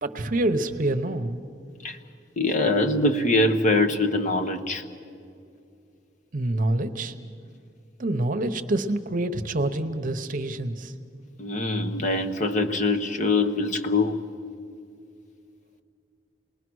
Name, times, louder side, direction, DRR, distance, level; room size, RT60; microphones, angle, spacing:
voice 1, 0.0-1.4 6.3-7.1 8.0-10.9, right 1 dB, 45° right, 8 dB, 0.9 m, -26 dB
voice 2, 2.4-4.8 11.4-14.2, left 2 dB, 45° left, 5 dB, 1.1 m, -23 dB
28.0 x 20.0 x 6.3 m, 2.4 s
head